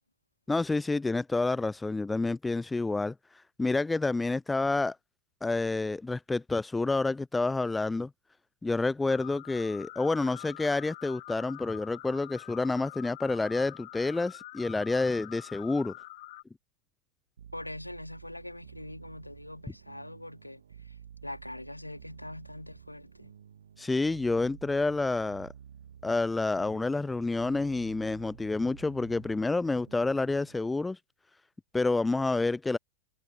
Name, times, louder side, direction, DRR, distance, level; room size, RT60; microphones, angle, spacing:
voice 1, 0.5-3.1 3.6-5.0 5.4-8.1 8.6-15.9 23.8-25.5 26.0-31.0 31.7-32.8, left 3 dB, 10° left, 0.4 m, -29 dB
sound 1, 9.1-16.4, left 18 dB, 50° left, 0.9 m, -46 dB
sound 2, 17.4-30.7, right 8 dB, 65° right, 2.4 m, -51 dB
voice 2, 17.5-23.3, left 1 dB, 85° left, 3.3 m, -43 dB
figure-of-eight pair, 90°, 0 cm